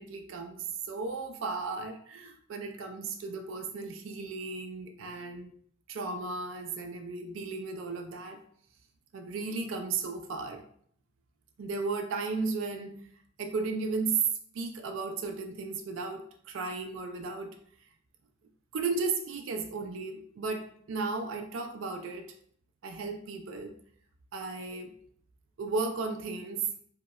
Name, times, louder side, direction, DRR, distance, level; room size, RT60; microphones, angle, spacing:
voice 1, 0.0-5.5 5.9-8.4 9.1-10.6 11.6-13.0 13.4-14.2 14.5-17.5 18.7-22.3 22.8-23.7 24.3-24.9 25.6-26.6, right 4 dB, 75° right, 5 dB, 0.4 m, -35 dB
4.6 x 2.1 x 2.2 m, 0.63 s
head